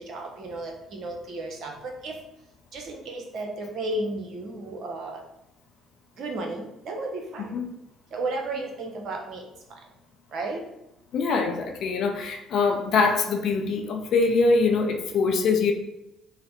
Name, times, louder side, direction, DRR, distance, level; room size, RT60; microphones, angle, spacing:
voice 1, 0.1-2.2 2.7-5.2 6.2-7.5 8.1-9.5 10.3-10.6 11.3-11.4, right 2 dB, 55° right, 2 dB, 0.8 m, -33 dB
voice 2, 11.1-15.7, left 4 dB, 55° left, 3 dB, 0.5 m, -23 dB
4.9 x 2.1 x 3.0 m, 0.89 s
figure-of-eight pair, 50°, 0 cm